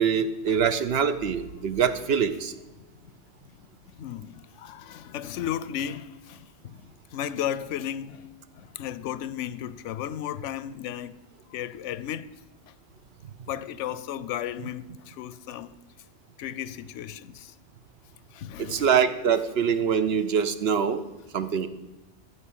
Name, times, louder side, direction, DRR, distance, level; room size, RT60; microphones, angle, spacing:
voice 1, 0.0-2.5 13.2-13.3 18.6-21.0 21.3-21.7, right 7 dB, 60° right, 0.9 m, -24 dB
voice 2, 3.9-11.2 11.5-12.3 13.5-15.7 16.4-17.5 18.3-18.9, left 10 dB, 85° left, 0.9 m, -35 dB
14.0 x 4.8 x 8.6 m
omnidirectional pair, 1.2 m